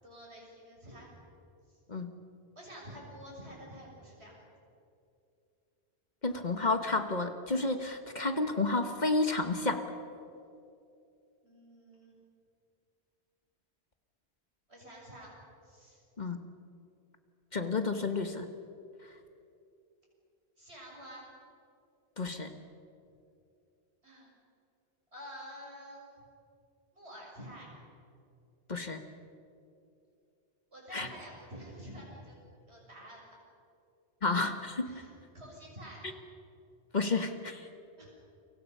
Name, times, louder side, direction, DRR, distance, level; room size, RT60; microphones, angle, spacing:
voice 1, 0.0-1.1 1.7-1.8 2.5-4.4 11.4-12.2 14.7-15.3 15.6-16.0 20.6-21.3 24.0-24.3 25.1-26.1 26.9-27.7 30.7-32.4 32.7-33.2 34.8-36.0 38.0-38.1, equal, 70° right, -3 dB, 7.2 m, -48 dB
voice 2, 6.2-9.8 16.2-16.4 17.5-18.5 22.2-22.5 28.7-29.0 30.9-31.1 34.2-34.9 36.9-37.7, left 3 dB, 45° left, 7 dB, 1.4 m, -31 dB
29.5 x 24.0 x 5.6 m, 2.6 s
omnidirectional pair, 1.1 m